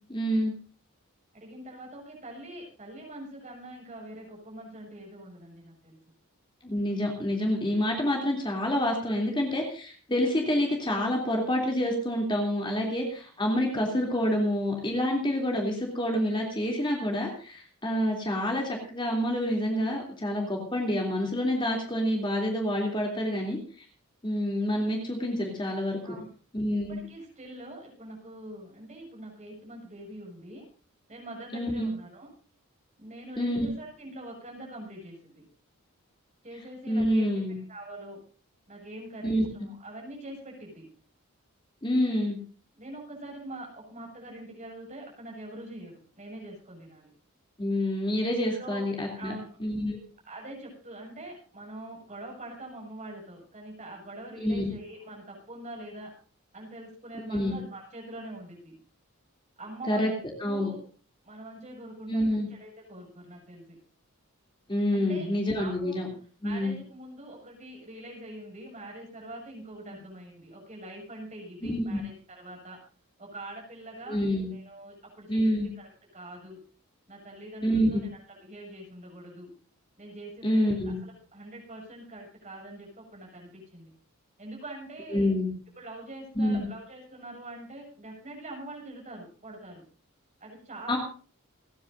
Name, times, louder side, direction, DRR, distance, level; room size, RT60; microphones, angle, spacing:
voice 1, 0.1-0.5 6.6-23.9 24.2-26.0 26.5-27.0 31.5-31.9 33.4-33.7 36.9-37.6 39.2-39.4 41.8-42.4 47.6-49.3 49.6-50.0 54.4-54.7 57.3-57.6 59.9-60.1 60.4-60.7 62.1-62.5 64.7-66.1 66.4-66.8 71.6-72.0 74.1-74.5 75.3-75.7 77.6-78.0 80.4-81.0 85.1-85.5 86.3-86.7 90.9-91.0, equal, 20° left, 0 dB, 3.1 m, -27 dB
voice 2, 1.3-6.0 26.0-26.3 26.7-30.7 31.1-32.3 33.0-35.5 36.4-37.3 37.7-38.2 38.7-40.9 42.7-47.1 48.6-48.9 49.1-49.6 50.3-56.1 56.5-58.8 59.6-60.8 61.2-63.8 64.9-65.3 65.5-66.0 66.4-72.8 73.2-74.2 74.5-76.6 77.1-78.1 78.4-79.5 80.0-83.9 84.4-85.3 85.8-89.8 90.4-91.0, right 1 dB, 35° right, -1 dB, 7.1 m, -44 dB
29.5 x 10.0 x 2.7 m, 0.42 s
head